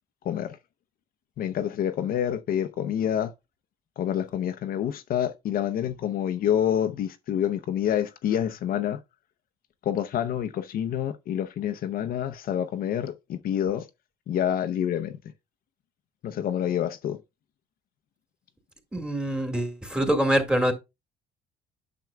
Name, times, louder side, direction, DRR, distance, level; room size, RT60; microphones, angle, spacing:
voice 1, 0.2-0.6 1.4-3.3 4.0-9.0 9.9-13.9 14.3-15.2 16.2-17.2, left 10 dB, 60° left, 0.7 m, -27 dB
voice 2, 18.9-20.7, right 1 dB, 5° right, 1.8 m, -24 dB
9.2 x 6.1 x 2.2 m
cardioid pair, 110°, 17 cm